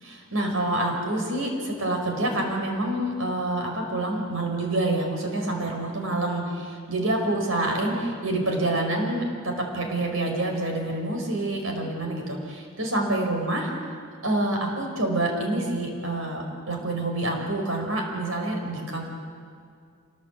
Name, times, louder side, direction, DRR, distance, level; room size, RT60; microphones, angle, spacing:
voice 1, 0.0-13.7 14.2-19.0, right 1 dB, 75° right, 2 dB, 5.2 m, -27 dB
26.5 x 19.5 x 8.4 m, 2.2 s
head